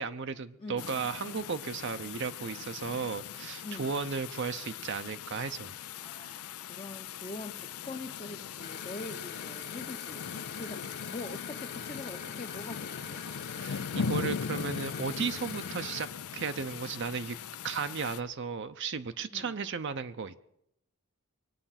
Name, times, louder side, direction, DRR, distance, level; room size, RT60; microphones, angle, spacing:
voice 1, 0.0-5.7 13.5-17.4 17.6-20.3, right 5 dB, 55° right, 9 dB, 0.6 m, -35 dB
sound 1, 0.8-18.2, left 6 dB, 85° left, 0.5 m, -40 dB
voice 2, 6.0-10.3 10.6-13.3 19.3-19.5, left 2 dB, 25° left, 1 dB, 0.8 m, -43 dB
sound 2, 8.6-16.1, left 7 dB, 50° left, 1.8 m, -44 dB
22.0 x 8.9 x 5.8 m, 0.76 s
head